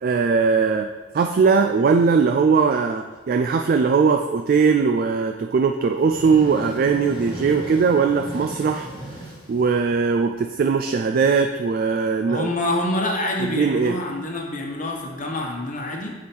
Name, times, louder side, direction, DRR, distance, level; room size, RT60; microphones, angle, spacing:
voice 1, 0.0-12.5 13.4-14.0, right 5 dB, 45° right, 5 dB, 0.3 m, -20 dB
sound 1, 5.9-10.4, right 1 dB, 20° left, 1.2 m, -36 dB
voice 2, 12.3-16.1, left 1 dB, 40° left, 0 dB, 1.1 m, -26 dB
7.1 x 4.8 x 4.4 m, 1.2 s
head